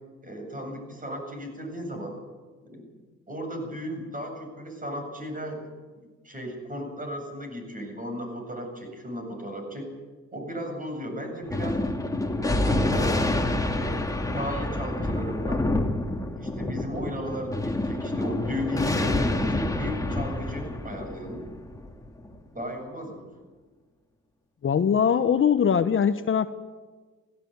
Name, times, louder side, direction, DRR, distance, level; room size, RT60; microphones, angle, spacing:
voice 1, 0.2-2.2 2.7-2.9 3.3-5.7 6.2-9.9 10.3-11.8 12.3-13.4 13.8-15.6 16.3-21.4 22.5-23.3, equal, 25° right, 3 dB, 7.8 m, -35 dB
Thunder, 11.5-22.3, left 2 dB, 10° left, 2.3 m, -28 dB
voice 2, 24.6-26.5, left 7 dB, 40° left, 10 dB, 1.0 m, -22 dB
17.0 x 16.5 x 9.7 m, 1.4 s
cardioid pair, 90°, 30 cm